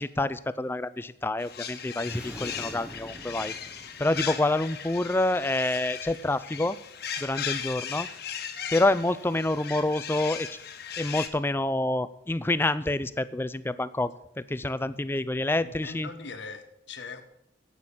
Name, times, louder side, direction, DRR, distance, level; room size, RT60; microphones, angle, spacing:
voice 1, 0.0-3.5 4.0-6.8 7.2-8.1 8.7-10.6 11.0-16.1, left 2 dB, 10° left, 15 dB, 0.4 m, -27 dB
sound 1, 1.4-11.3, left 8 dB, 55° left, 1.2 m, -37 dB
sound 2, 1.9-4.5, equal, 5° right, 0.9 m, -44 dB
voice 2, 15.6-17.2, left 4 dB, 75° left, 8 dB, 1.4 m, -41 dB
10.5 x 8.6 x 7.4 m, 0.78 s
head